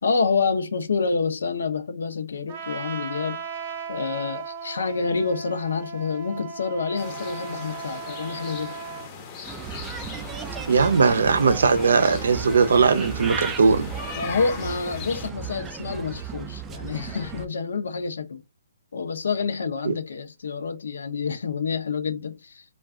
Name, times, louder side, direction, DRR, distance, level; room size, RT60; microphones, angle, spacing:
voice 1, 0.0-3.4 3.9-8.7 14.1-18.4 18.9-22.6, left 5 dB, 80° left, 0.6 m, -28 dB
Trumpet, 2.5-9.1, right 5 dB, 40° right, 0.7 m, -36 dB
sound 1, 7.0-15.3, left 5 dB, 25° left, 0.6 m, -39 dB
Bird, 9.4-17.5, right 6 dB, 15° right, 0.3 m, -35 dB
voice 2, 10.7-13.9 19.8-19.9, right 5 dB, 75° right, 0.5 m, -19 dB
2.3 x 2.3 x 3.5 m
hypercardioid pair, 155°, 0 cm